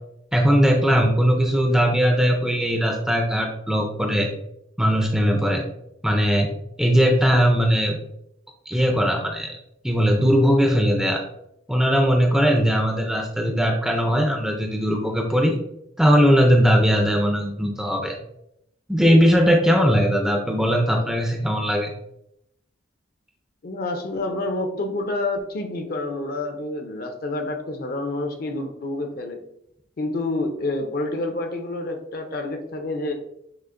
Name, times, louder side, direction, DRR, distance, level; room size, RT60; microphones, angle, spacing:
voice 1, 0.3-4.3 4.8-5.6 6.0-6.5 6.8-8.0 8.7-9.6 9.8-11.2 11.7-15.6 16.0-18.2 18.9-21.9, equal, 5° right, 2 dB, 0.4 m, -19 dB
voice 2, 23.6-29.4 30.0-33.1, left 2 dB, 50° left, 5 dB, 0.5 m, -28 dB
6.2 x 2.5 x 2.5 m, 0.78 s
head